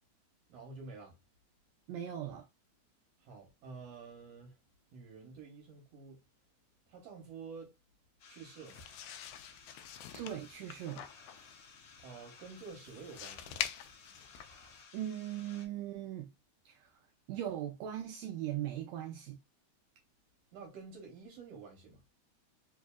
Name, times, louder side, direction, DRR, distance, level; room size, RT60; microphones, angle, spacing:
voice 1, 0.5-1.2 3.2-4.6 4.9-6.2 6.9-7.7 8.3-8.8 12.0-13.6 20.5-22.0, right 4 dB, 65° right, 2.0 m, -49 dB
voice 2, 1.9-2.5 10.1-11.1 14.9-16.3 16.6-17.0 17.3-19.4, right 11 dB, 80° right, 1.6 m, -39 dB
sound 1, 8.2-15.7, left 5 dB, 65° left, 1.4 m, -57 dB
sound 2, 8.7-14.8, left 11 dB, 80° left, 1.8 m, -45 dB
4.8 x 2.6 x 2.3 m
omnidirectional pair, 3.5 m